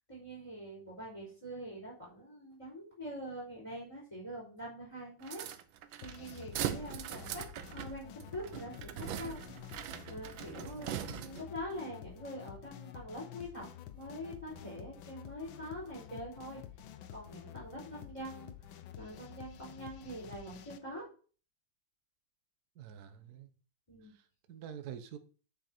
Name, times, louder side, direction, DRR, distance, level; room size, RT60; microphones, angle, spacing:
voice 1, 0.1-5.4 6.0-9.4 10.1-13.7 13.9-16.6 17.1-21.0 23.9-24.1, equal, 15° left, 4.2 m, -44 dB
sound 1, 5.2-11.6, right 10 dB, 70° right, 1.4 m, -41 dB
sound 2, 6.0-20.8, left 11 dB, 70° left, 1.4 m, -50 dB
voice 2, 22.8-23.5 24.0-25.2, right 9 dB, 55° right, 1.2 m, -47 dB
9.7 x 5.8 x 4.4 m
omnidirectional pair, 2.3 m